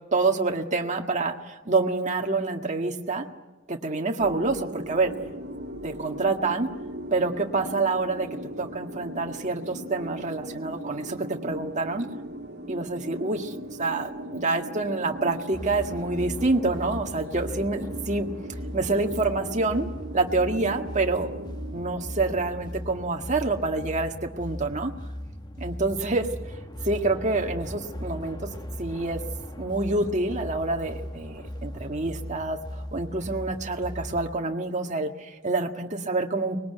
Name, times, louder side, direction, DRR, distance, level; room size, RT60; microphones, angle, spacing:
voice 1, 0.1-3.3 3.7-5.1 5.8-6.7 7.1-8.3 8.6-12.1 12.7-13.5 13.8-18.3 18.7-19.9 20.1-21.3 21.7-24.9 25.6-26.3 26.9-28.5 28.8-29.2 29.6-36.6, right 3 dB, 35° right, 4 dB, 1.8 m, -27 dB
sound 1, 4.2-23.4, equal, 55° right, 2.4 m, -39 dB
sound 2, 15.5-34.3, equal, 20° left, 1.5 m, -38 dB
24.5 x 21.0 x 9.3 m, 1.1 s
head